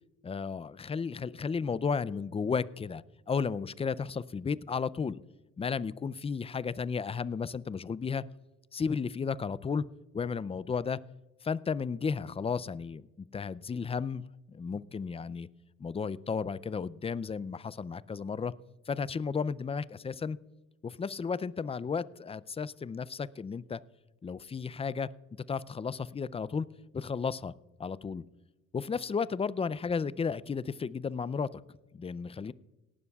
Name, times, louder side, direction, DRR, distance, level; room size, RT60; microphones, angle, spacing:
voice 1, 0.2-5.2 5.6-8.2 8.7-9.8 10.1-11.0 11.4-14.2 14.5-15.5 15.8-18.5 18.9-20.4 20.8-23.8 24.2-25.1 25.5-26.7 26.9-27.5 27.8-28.2 28.7-31.6 31.9-32.5, left 5 dB, 20° left, 18 dB, 0.4 m, -33 dB
18.0 x 12.5 x 2.3 m, 1.1 s
cardioid pair, 90°, 30 cm